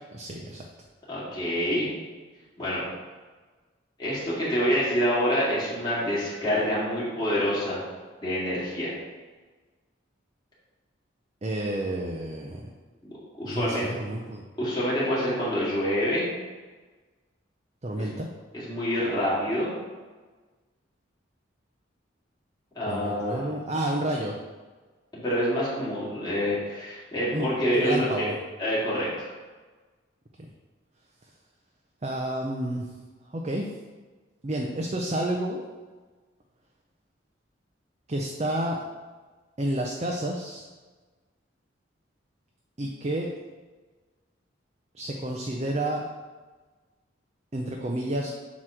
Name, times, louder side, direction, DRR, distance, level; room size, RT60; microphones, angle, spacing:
voice 1, 0.1-0.7 11.4-12.7 13.5-14.4 17.8-18.3 22.9-24.3 27.3-27.5 27.7-28.4 30.4-30.5 32.0-32.9 33.3-33.7 34.4-35.6 38.1-38.8 39.6-40.7 42.8-43.3 44.9-46.0 47.5-48.3, right 1 dB, 35° right, 0 dB, 0.5 m, -30 dB
voice 2, 1.1-1.9 2.6-2.8 4.0-7.8 8.2-8.9 13.4-13.8 14.6-16.2 18.0-18.1 18.5-19.7 22.8-23.5 25.1-28.3 28.6-29.3, equal, 20° left, -8 dB, 2.0 m, -26 dB
7.6 x 3.1 x 6.1 m, 1.3 s
head